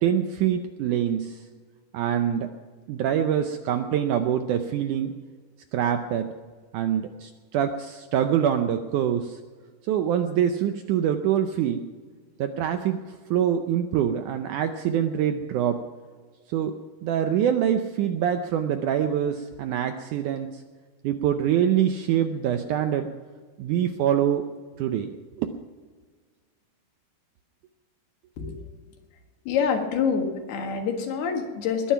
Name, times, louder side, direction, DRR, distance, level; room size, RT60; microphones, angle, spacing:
voice 1, 0.0-1.4 1.9-2.5 2.9-5.1 5.7-6.3 6.7-9.4 9.9-11.9 12.4-15.8 16.5-16.7 17.0-20.6 21.0-23.1 23.6-24.4 24.8-25.1 25.4-25.5, right 9 dB, 80° right, 7 dB, 1.8 m, -25 dB
voice 2, 29.5-31.9, left 6 dB, 90° left, 3 dB, 3.8 m, -26 dB
21.5 x 10.0 x 5.9 m, 1.5 s
omnidirectional pair, 4.4 m